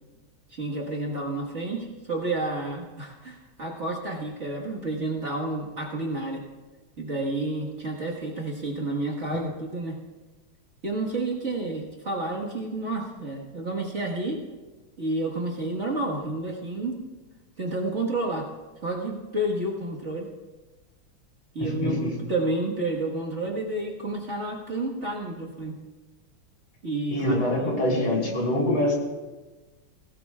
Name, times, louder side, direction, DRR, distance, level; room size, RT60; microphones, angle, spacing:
voice 1, 0.5-6.4 7.0-10.0 10.8-14.4 15.0-17.0 17.6-18.5 18.8-20.3 21.5-25.8 26.8-28.0, right 2 dB, 35° right, -3 dB, 1.7 m, -30 dB
voice 2, 21.6-22.1 27.1-28.9, left 1 dB, 75° left, -2 dB, 4.3 m, -25 dB
21.0 x 17.5 x 2.4 m, 1.2 s
omnidirectional pair, 2.3 m